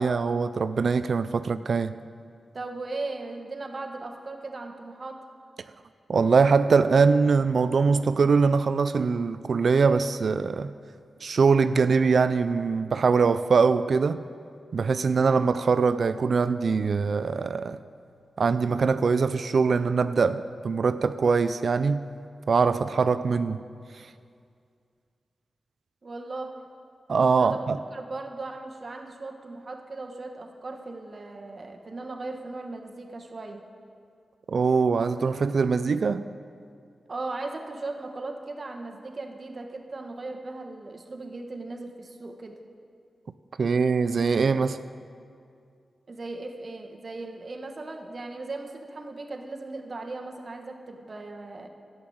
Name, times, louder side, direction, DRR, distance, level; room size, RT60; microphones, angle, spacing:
voice 1, 0.0-1.9 6.1-10.7 11.2-14.2 14.7-17.8 18.4-22.1 22.5-23.6 23.9-24.0 27.1-27.8 34.5-36.2 43.6-44.8, right 5 dB, 65° right, 0.3 m, -22 dB
voice 2, 2.5-5.2 26.0-26.6 27.4-33.6 37.1-42.6 46.1-51.7, right 3 dB, 45° right, 1.3 m, -37 dB
12.0 x 7.9 x 8.6 m
cardioid pair, 80°, 0 cm